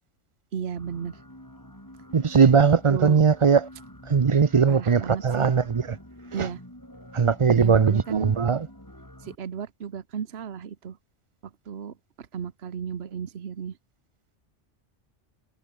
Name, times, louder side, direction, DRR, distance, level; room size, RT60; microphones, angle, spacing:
voice 1, 0.5-1.2 2.9-3.2 4.7-5.5 6.3-6.6 7.6-8.3 9.2-11.0 11.7-13.7, right 7 dB, 60° right, 1.3 m, -34 dB
sound 1, 0.8-9.4, left 1 dB, 15° left, 5.5 m, -47 dB
voice 2, 2.1-3.6 4.1-5.8 7.1-8.6, right 6 dB, 35° right, 0.5 m, -19 dB
omnidirectional pair, 1.3 m